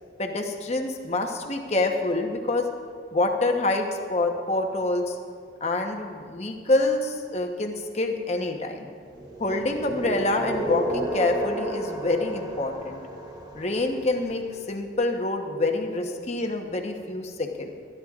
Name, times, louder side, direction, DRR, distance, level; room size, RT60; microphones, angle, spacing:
voice 1, 0.2-2.7 3.1-5.2 5.6-8.9 9.4-13.0 13.5-17.7, left 2 dB, 35° left, 3 dB, 1.0 m, -26 dB
sound 1, 9.1-14.1, right 1 dB, 20° right, 1.1 m, -32 dB
24.0 x 11.0 x 2.4 m, 2.1 s
head